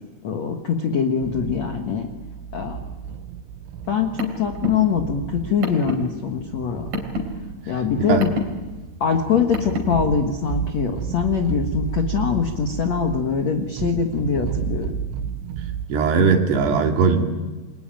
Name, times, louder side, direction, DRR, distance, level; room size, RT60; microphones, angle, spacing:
voice 1, 0.2-2.1 2.5-2.8 3.9-6.9 7.7-8.3 9.0-15.0, left 6 dB, 60° left, 4 dB, 1.8 m, -23 dB
sound 1, 1.2-15.9, right 8 dB, 80° right, 3.4 m, -33 dB
Car, 3.8-10.1, equal, 50° right, 4.6 m, -31 dB
voice 2, 15.9-17.2, right 5 dB, 65° right, 3 dB, 4.3 m, -19 dB
29.0 x 21.0 x 9.1 m, 1.2 s
omnidirectional pair, 5.4 m